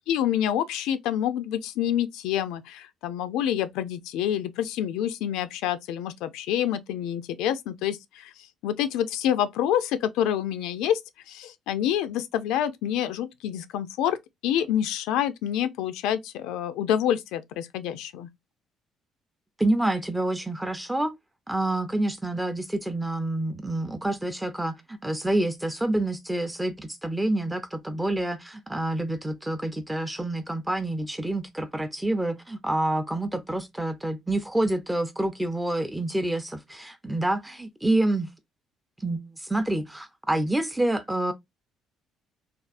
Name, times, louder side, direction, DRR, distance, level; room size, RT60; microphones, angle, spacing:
voice 1, 0.1-8.3 8.6-11.0 11.3-14.2 14.4-18.3, left 10 dB, 90° left, 0.4 m, -27 dB
voice 2, 19.6-21.1 21.5-38.3 39.0-41.3, right 1 dB, 5° right, 0.5 m, -27 dB
3.4 x 2.4 x 2.4 m
cardioid pair, 120°, 0 cm